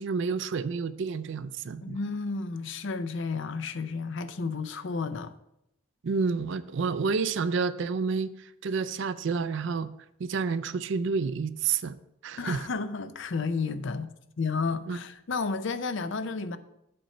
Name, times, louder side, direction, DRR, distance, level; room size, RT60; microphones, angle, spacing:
voice 1, 0.0-2.0 6.0-8.3 8.6-9.9 10.2-12.0 12.2-12.7 14.9-15.0, right 5 dB, 65° right, 0.4 m, -29 dB
voice 2, 1.8-5.3 12.4-14.1 14.4-16.6, left 4 dB, 65° left, 0.5 m, -32 dB
7.7 x 4.4 x 6.6 m
head